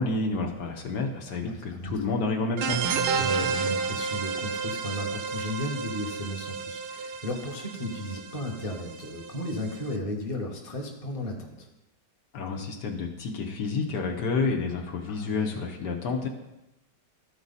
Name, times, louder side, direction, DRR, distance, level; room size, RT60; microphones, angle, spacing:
voice 1, 0.0-2.8 12.3-16.3, left 3 dB, 65° left, 2 dB, 1.4 m, -29 dB
voice 2, 1.5-2.0 3.2-11.7 15.1-15.6, left 1 dB, 25° left, 0 dB, 1.0 m, -34 dB
sound 1, 2.6-9.9, right 5 dB, 70° right, 1.2 m, -31 dB
13.5 x 4.8 x 4.1 m, 0.91 s
omnidirectional pair, 2.0 m